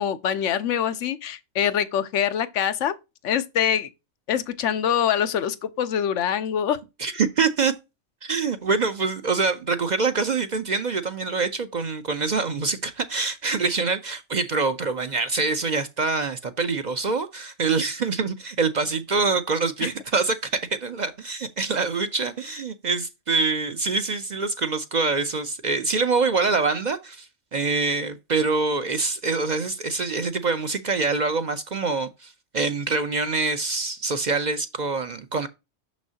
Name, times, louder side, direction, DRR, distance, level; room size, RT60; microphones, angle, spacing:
voice 1, 0.0-3.0 3.2-3.9 4.3-6.8 19.8-19.9, left 9 dB, 90° left, 1.0 m, -24 dB
voice 2, 7.0-7.7 8.2-35.5, right 4 dB, 50° right, 0.6 m, -25 dB
6.4 x 6.1 x 2.8 m
omnidirectional pair, 1.2 m